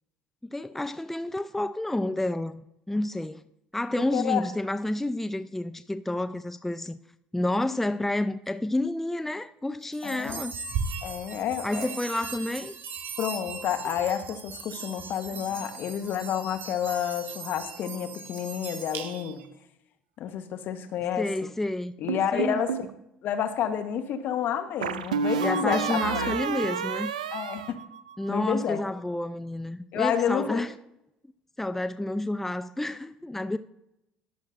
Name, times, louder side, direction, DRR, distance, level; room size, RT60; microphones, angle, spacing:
voice 1, 0.4-3.4 3.7-7.0 7.3-10.5 11.6-12.8 21.2-21.9 22.3-22.6 25.4-27.1 28.2-30.7 31.6-33.6, left 1 dB, 5° left, 0.5 m, -30 dB
voice 2, 4.0-4.4 10.0-10.4 11.0-11.9 13.2-19.5 20.2-21.5 22.0-22.9 23.2-26.3 27.3-27.8 28.3-28.8 29.9-30.6, left 9 dB, 55° left, 1.1 m, -30 dB
Chinese Iron Balls, 9.9-19.5, right 5 dB, 60° right, 1.4 m, -38 dB
sound 1, 22.1-22.9 24.8-28.4, right 6 dB, 90° right, 0.4 m, -30 dB
21.0 x 7.3 x 2.6 m
hypercardioid pair, 65°, 4 cm